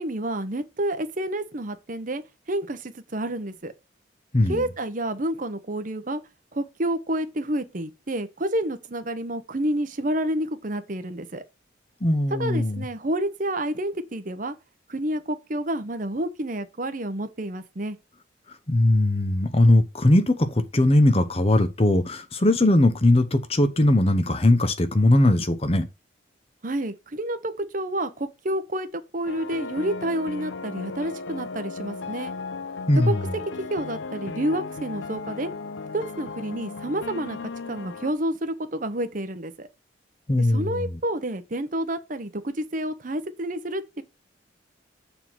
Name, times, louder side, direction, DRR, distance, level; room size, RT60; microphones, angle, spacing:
voice 1, 0.0-2.2 2.5-3.7 4.5-6.2 6.5-11.4 12.3-14.5 14.9-18.0 26.6-32.4 32.9-33.1 33.6-35.5 35.9-39.7 40.4-44.0, right 1 dB, 40° right, 0.8 m, -29 dB
voice 2, 4.3-4.6 12.0-12.8 18.7-25.9 32.9-33.3 40.3-40.8, left 1 dB, 30° left, 0.8 m, -20 dB
sound 1, 29.2-38.1, left 4 dB, 70° left, 0.6 m, -36 dB
7.1 x 3.7 x 6.0 m
head